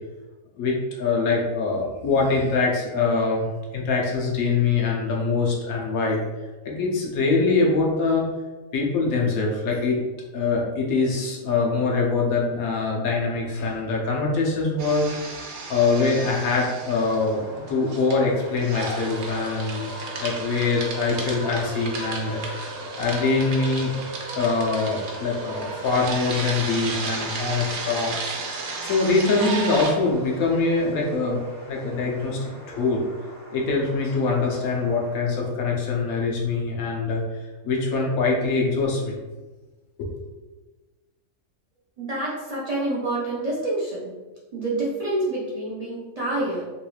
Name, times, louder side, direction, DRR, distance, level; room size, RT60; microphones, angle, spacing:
voice 1, 0.6-3.5 3.7-6.2 6.6-8.2 8.7-10.0 10.3-15.3 15.7-17.4 17.7-19.9 20.2-23.9 24.3-28.4 28.8-31.4 31.6-33.0 33.5-37.2 37.6-39.2 40.0-40.1, left 4 dB, 85° left, -1 dB, 1.2 m, -23 dB
sound 1, 14.8-17.4 17.7-29.9, right 3 dB, 85° right, 1.1 m, -33 dB
sound 2, 17.0-35.2, equal, 40° left, 1.2 m, -41 dB
voice 2, 42.0-44.1 44.5-46.6, right 2 dB, 65° right, -7 dB, 0.3 m, -27 dB
3.1 x 3.1 x 2.3 m, 1.2 s
omnidirectional pair, 1.4 m